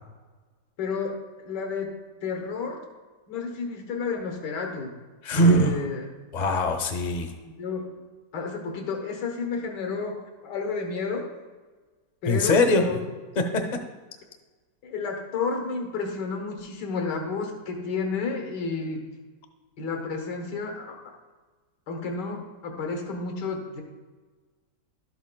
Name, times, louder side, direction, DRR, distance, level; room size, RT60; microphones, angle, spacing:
voice 1, 0.8-2.0 2.2-2.9 3.3-4.9 5.4-6.1 7.6-8.0 8.3-11.3 12.2-13.0 14.8-19.1 19.8-21.2 21.9-23.8, left 4 dB, 85° left, 3 dB, 1.7 m, -31 dB
voice 2, 5.2-5.8 6.3-7.3 12.3-13.0 13.4-13.8, equal, 40° left, 5 dB, 0.7 m, -22 dB
12.0 x 8.2 x 2.2 m, 1.3 s
omnidirectional pair, 1.8 m